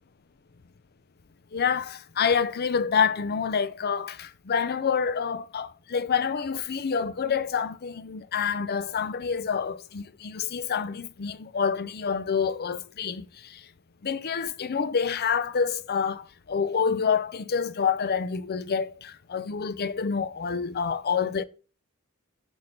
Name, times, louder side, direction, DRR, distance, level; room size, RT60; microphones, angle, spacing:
voice 1, 1.5-13.6 14.0-21.4, left 6 dB, 50° left, 0.6 m, -27 dB
6.9 x 6.2 x 5.3 m
head